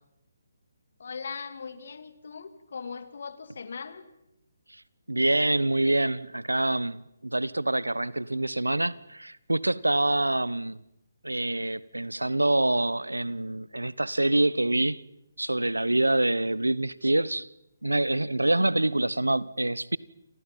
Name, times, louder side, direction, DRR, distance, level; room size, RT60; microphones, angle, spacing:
voice 1, 1.0-4.0, left 5 dB, 60° left, 2.5 m, -39 dB
voice 2, 5.1-10.8 11.2-15.0 15.4-17.5 17.8-20.0, right 1 dB, 90° right, 1.0 m, -26 dB
29.0 x 25.5 x 5.7 m
figure-of-eight pair, 145°, 0 cm